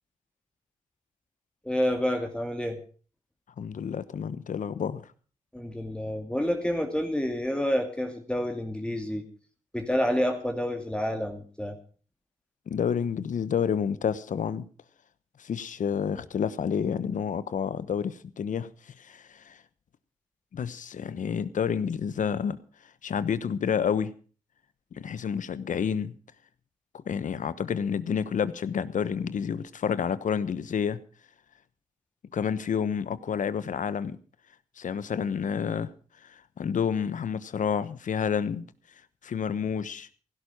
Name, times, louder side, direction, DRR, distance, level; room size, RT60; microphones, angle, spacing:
voice 1, 1.6-2.8 5.5-9.2 9.7-11.8, equal, 5° left, 2.3 m, -28 dB
voice 2, 3.6-5.1 12.7-14.7 15.4-18.7 19.0-19.6 20.5-22.6 23.0-24.1 24.9-26.2 27.1-31.0 32.3-34.2 34.8-35.9 36.2-38.7 39.2-40.1, left 7 dB, 75° left, 1.1 m, -29 dB
16.5 x 11.5 x 5.4 m
cardioid pair, 65°, 13 cm